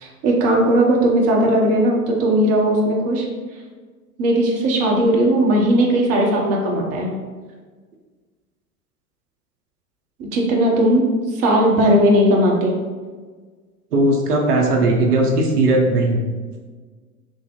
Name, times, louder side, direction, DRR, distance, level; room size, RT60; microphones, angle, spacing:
voice 1, 0.0-3.3 4.2-7.1 10.2-12.7, right 1 dB, 30° right, -1 dB, 0.7 m, -17 dB
voice 2, 13.9-16.2, right 2 dB, 85° right, 1 dB, 0.7 m, -17 dB
3.4 x 2.0 x 3.5 m, 1.4 s
hypercardioid pair, 95°, 45 cm